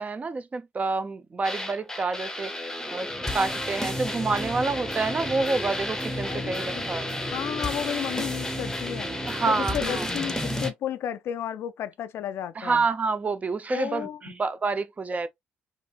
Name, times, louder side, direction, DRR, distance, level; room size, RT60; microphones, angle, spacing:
voice 1, 0.0-2.5 2.9-7.1 9.2-10.0 12.6-15.3, right 4 dB, 30° right, 0.5 m, -28 dB
sound 1, 1.4-10.7, left 1 dB, 10° left, 0.7 m, -31 dB
voice 2, 6.3-6.9 7.3-9.1 9.4-12.9 13.7-14.3, left 10 dB, 65° left, 0.3 m, -33 dB
3.0 x 2.5 x 2.3 m
supercardioid pair, 60°, 4 cm